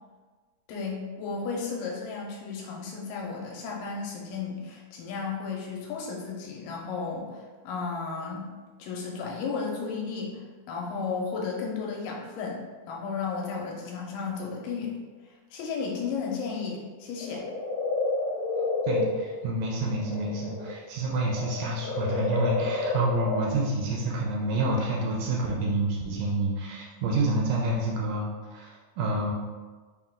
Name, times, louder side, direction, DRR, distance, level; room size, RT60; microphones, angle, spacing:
voice 1, 0.7-8.5 8.8-10.4 10.7-14.9 15.3-17.5, left 5 dB, 85° left, -2 dB, 2.3 m, -34 dB
sound 1, 17.2-20.7 21.0-23.6 24.6-24.7, left 2 dB, 55° left, 1.4 m, -29 dB
voice 2, 18.9-29.3, right 2 dB, 80° right, -2 dB, 2.0 m, -28 dB
5.5 x 2.3 x 3.5 m, 1.3 s
omnidirectional pair, 4.0 m